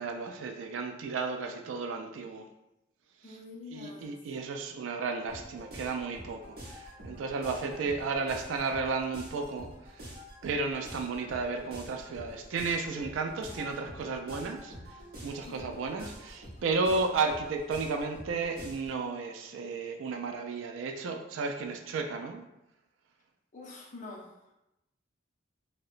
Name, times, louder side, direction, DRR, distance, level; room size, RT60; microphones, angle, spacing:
voice 1, 0.0-2.5 3.7-10.1 10.4-15.0 15.2-22.4, right 4 dB, 75° right, 5 dB, 0.3 m, -33 dB
voice 2, 3.2-4.2 15.4-15.6 23.5-24.5, left 3 dB, 40° left, -2 dB, 0.5 m, -46 dB
sound 1, 5.3-19.0, equal, 50° right, 0.7 m, -47 dB
2.8 x 2.1 x 2.4 m, 0.90 s
head